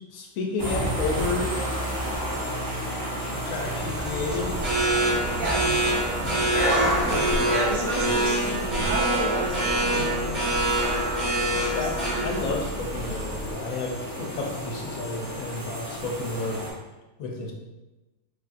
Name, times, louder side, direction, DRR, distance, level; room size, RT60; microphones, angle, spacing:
voice 1, 0.1-1.5 2.1-2.2 3.3-4.6 6.2-6.5 11.6-16.7 17.2-17.5, left 3 dB, 85° left, 1 dB, 1.0 m, -31 dB
sound 1, 0.6-16.7, equal, 30° right, 0.3 m, -33 dB
sound 2, 3.9-13.5, right 1 dB, 60° right, 1.7 m, -25 dB
sound 3, 5.3-5.8 6.8-7.5 8.0-8.9, equal, 40° left, 0.5 m, -38 dB
voice 2, 5.4-5.7 6.0-6.3 7.5-10.8 11.4-12.4, right 1 dB, 80° right, -2 dB, 1.1 m, -32 dB
3.3 x 2.5 x 2.4 m, 1.1 s
omnidirectional pair, 1.4 m